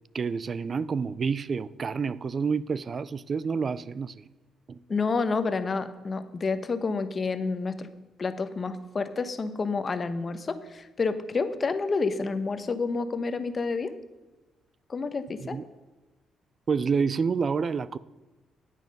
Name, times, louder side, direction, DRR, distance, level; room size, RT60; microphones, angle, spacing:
voice 1, 0.1-4.3 4.7-4.8 15.4-15.6 16.7-18.0, right 5 dB, 45° right, 0.4 m, -28 dB
voice 2, 4.9-7.9 8.2-13.9 14.9-15.6, left 4 dB, 35° left, 0.9 m, -29 dB
9.4 x 9.1 x 5.3 m
cardioid pair, 90°, 0 cm